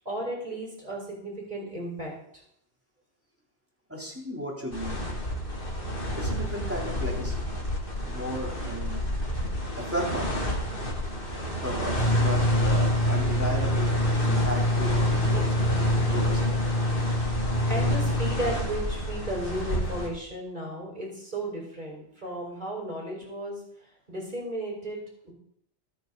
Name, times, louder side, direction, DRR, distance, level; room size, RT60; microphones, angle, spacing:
voice 1, 0.1-2.1 17.7-23.6 24.1-25.3, right 1 dB, 45° right, -2 dB, 5.5 m, -34 dB
voice 2, 3.9-5.1 6.2-7.5 8.1-9.2 9.8-10.4 11.6-14.0 14.3-16.6, equal, 10° right, -2 dB, 3.5 m, -35 dB
sound 1, 4.7-20.1, left 1 dB, 55° left, 2.7 m, -27 dB
24.0 x 9.5 x 4.1 m, 0.70 s
omnidirectional pair, 1.1 m